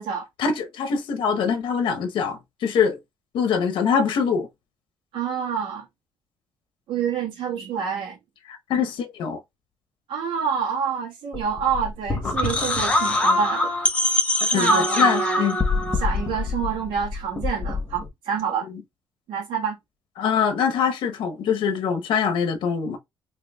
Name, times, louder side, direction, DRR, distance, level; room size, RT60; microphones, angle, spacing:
voice 1, 0.4-3.0 3.3-4.5 8.5-9.4 14.5-15.6 20.2-23.0, left 6 dB, 70° left, 0.9 m, -23 dB
voice 2, 5.1-5.9 6.9-8.2 10.1-13.7 14.5-15.6 15.9-18.7 19.3-19.7, right 7 dB, 85° right, 1.5 m, -27 dB
sound 1, 11.3-18.1, left 2 dB, 15° left, 0.9 m, -23 dB
4.9 x 2.9 x 2.3 m
cardioid pair, 155°, 9 cm